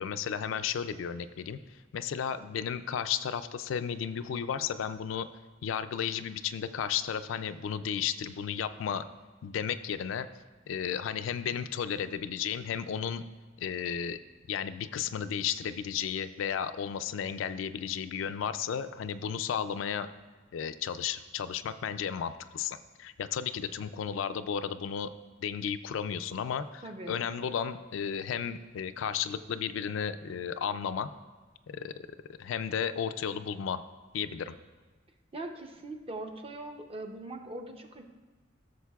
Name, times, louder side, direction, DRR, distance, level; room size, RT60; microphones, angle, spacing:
voice 1, 0.0-1.6 1.9-5.3 5.6-9.1 9.4-10.3 10.7-13.2 13.6-14.2 14.5-20.1 20.5-25.1 25.4-31.1 31.7-31.9 32.4-33.8 34.1-34.6, left 8 dB, 70° left, 11 dB, 0.3 m, -33 dB
voice 2, 26.8-27.2 35.3-38.0, right 2 dB, 30° right, 5 dB, 0.6 m, -41 dB
14.0 x 6.4 x 2.3 m, 1.3 s
head